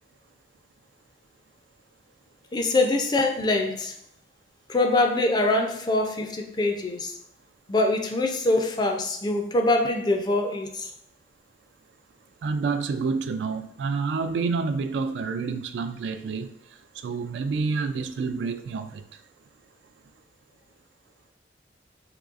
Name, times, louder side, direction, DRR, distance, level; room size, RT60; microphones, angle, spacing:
voice 1, 2.5-3.9 4.7-7.1 7.7-10.9, left 2 dB, 25° left, 0.3 m, -24 dB
voice 2, 12.4-16.5 17.0-19.0, right 4 dB, 80° right, 0.3 m, -28 dB
3.7 x 3.1 x 2.4 m
head